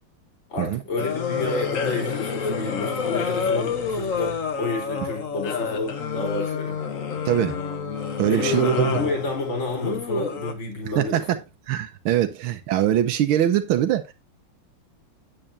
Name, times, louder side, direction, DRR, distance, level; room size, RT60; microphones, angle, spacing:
voice 1, 0.5-6.8 8.3-11.2, left 3 dB, 70° left, 4.9 m, -30 dB
sound 1, 1.0-10.5, left 5 dB, 45° left, 1.3 m, -28 dB
voice 2, 7.2-7.6 8.2-8.9 10.9-11.3 11.7-14.1, right 11 dB, 85° right, 1.7 m, -22 dB
8.9 x 8.7 x 2.7 m
omnidirectional pair, 2.2 m